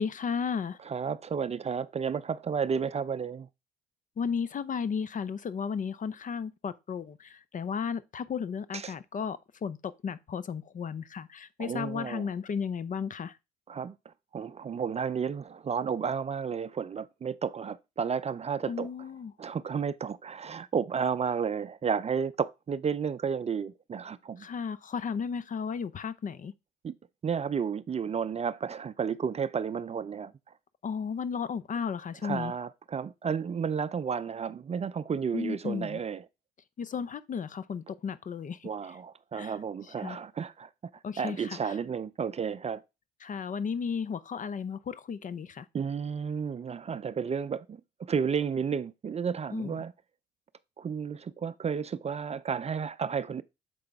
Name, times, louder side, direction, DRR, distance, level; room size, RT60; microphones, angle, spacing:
voice 1, 0.0-0.8 4.2-13.4 18.7-19.3 24.4-26.5 30.8-32.5 35.3-36.0 36.8-38.7 39.3-39.5 40.0-40.2 41.0-41.8 43.2-45.7 49.5-49.8, left 6 dB, 40° left, 0.6 m, -34 dB
voice 2, 0.8-3.5 8.7-8.9 11.6-12.3 13.7-18.9 19.4-24.5 26.8-26.9 27.2-30.3 32.2-36.2 38.6-40.7 41.2-42.8 45.7-49.9 50.8-53.4, right 6 dB, 30° right, 0.5 m, -32 dB
6.8 x 4.9 x 3.5 m
supercardioid pair, 65°, 20 cm